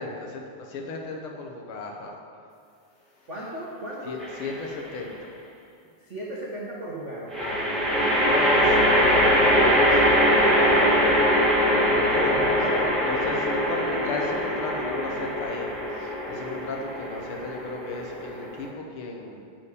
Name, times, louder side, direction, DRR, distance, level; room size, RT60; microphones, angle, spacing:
voice 1, 0.0-2.2 4.0-5.3 7.4-11.2 11.9-12.6 13.0-19.5, left 3 dB, 75° left, 1 dB, 1.2 m, -35 dB
voice 2, 3.3-4.2 6.0-7.6 12.3-13.0, right 1 dB, 90° right, -5 dB, 0.6 m, -35 dB
sound 1, 4.2-4.8 7.3-18.7, equal, ahead, 0.4 m, -22 dB
sound 2, 8.0-15.6, left 1 dB, 30° right, 0.8 m, -36 dB
8.4 x 7.1 x 6.7 m, 2.3 s
omnidirectional pair, 3.6 m